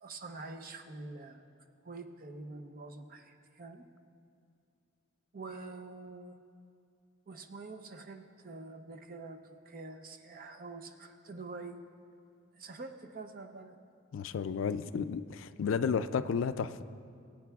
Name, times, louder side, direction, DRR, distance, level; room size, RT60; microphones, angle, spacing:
voice 1, 0.0-1.4 1.8-3.8 5.3-6.3 7.3-11.8 12.6-13.8, right 3 dB, 45° right, 6 dB, 0.6 m, -46 dB
voice 2, 14.1-16.8, left 6 dB, 70° left, 13 dB, 0.3 m, -32 dB
23.0 x 8.6 x 2.3 m, 2.3 s
head